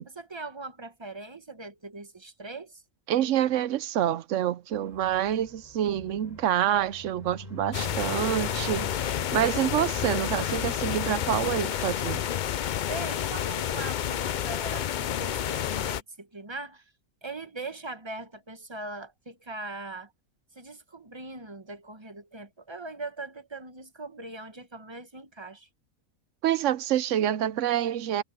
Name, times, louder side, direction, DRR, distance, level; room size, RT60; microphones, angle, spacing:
voice 1, 0.2-2.8 12.9-16.8 17.2-20.1 20.5-25.7, right 2 dB, 20° right, 1.1 m, -40 dB
voice 2, 3.1-12.3 26.4-28.2, right 11 dB, 65° right, 0.9 m, -27 dB
sound 1, 4.7-10.4, equal, 30° left, 4.4 m, -44 dB
sound 2, 7.7-16.0, left 10 dB, 80° left, 0.4 m, -30 dB
omnidirectional pair, 1.4 m